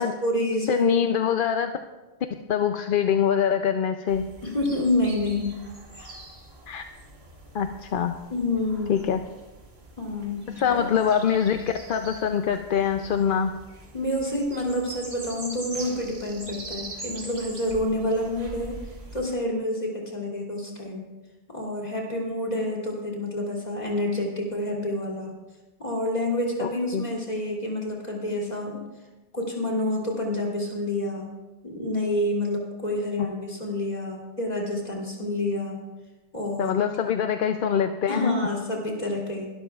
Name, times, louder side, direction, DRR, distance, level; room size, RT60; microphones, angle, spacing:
voice 1, 0.0-1.0 4.4-5.5 5.9-6.1 8.3-9.0 10.0-10.9 13.9-18.8 19.1-21.0 21.5-25.3 25.8-28.8 29.3-31.3 31.6-35.8 36.3-36.8 38.1-39.5, left 1 dB, 40° left, -2 dB, 2.9 m, -28 dB
voice 2, 0.7-1.7 2.5-4.2 6.7-6.8 7.5-8.1 8.9-9.2 10.6-11.6 11.9-13.5 26.6-27.0 36.6-38.3, left 8 dB, 60° left, 6 dB, 0.7 m, -24 dB
sound 1, 4.1-19.2, right 2 dB, 85° right, 2.0 m, -43 dB
22.5 x 12.5 x 2.4 m, 1.1 s
omnidirectional pair, 1.0 m